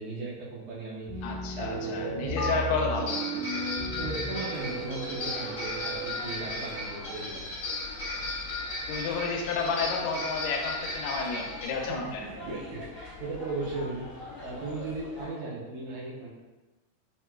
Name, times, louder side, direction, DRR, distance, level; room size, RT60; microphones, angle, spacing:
voice 1, 0.0-1.3 1.6-3.0 3.4-3.6 4.0-7.4 11.8-11.9 12.4-16.3, right 3 dB, 75° right, -6 dB, 1.9 m, -37 dB
sound 1, 1.1-8.5, right 2 dB, 50° right, 0.9 m, -37 dB
voice 2, 1.2-3.1 8.9-12.2, left 4 dB, 85° left, 1 dB, 2.2 m, -31 dB
sound 2, 2.4-2.5 3.1-11.7, left 2 dB, 50° left, 1.6 m, -35 dB
sound 3, 4.5-15.3, left 3 dB, 65° left, 2.3 m, -44 dB
5.8 x 2.2 x 2.2 m, 1.1 s
omnidirectional pair, 3.9 m